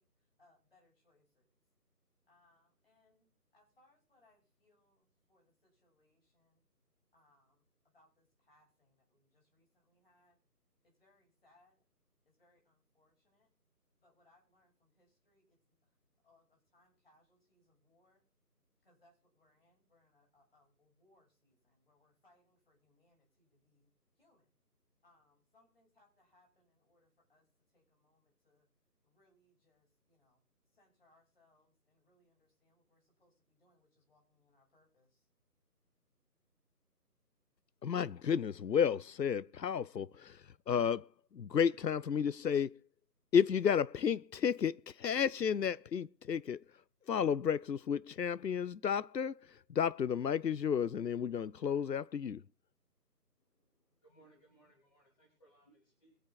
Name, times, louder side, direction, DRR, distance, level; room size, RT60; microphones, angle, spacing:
voice 1, 0.0-1.5 2.3-6.7 7.1-10.4 10.8-11.8 12.2-13.5 14.0-15.9 16.2-18.2 18.8-24.5 25.0-28.7 29.0-30.4 30.7-35.3, left 2 dB, 35° left, 6.3 m, -72 dB
voice 2, 37.8-42.8 43.3-46.8 47.1-52.4, left 7 dB, 85° left, 0.6 m, -32 dB
voice 3, 53.4-56.2, right 2 dB, 20° left, 3.3 m, -67 dB
23.0 x 8.8 x 4.0 m
figure-of-eight pair, 165°, 49 cm